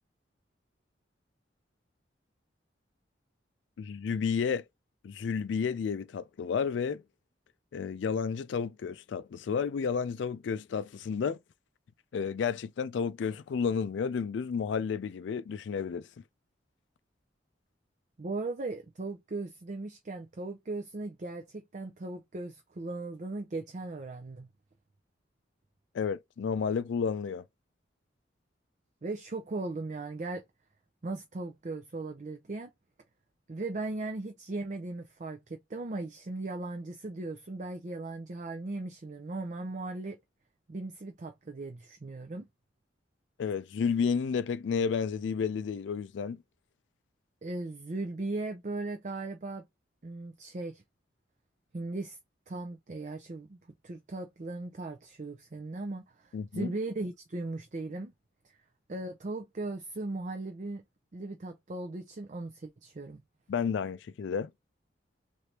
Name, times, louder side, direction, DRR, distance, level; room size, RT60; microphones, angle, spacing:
voice 1, 3.8-4.6 5.0-7.0 7.7-11.4 12.1-16.2 25.9-27.4 43.4-46.4 56.3-56.7 63.5-64.5, left 6 dB, 80° left, 0.3 m, -31 dB
voice 2, 18.2-24.5 29.0-30.4 31.0-32.7 33.5-40.2 40.7-42.5 47.4-49.7 50.0-50.8 51.7-52.2 52.5-53.6 53.8-58.1 58.4-58.6 58.9-60.8 61.1-63.2, right 2 dB, 40° right, 0.5 m, -38 dB
3.3 x 2.6 x 2.9 m
head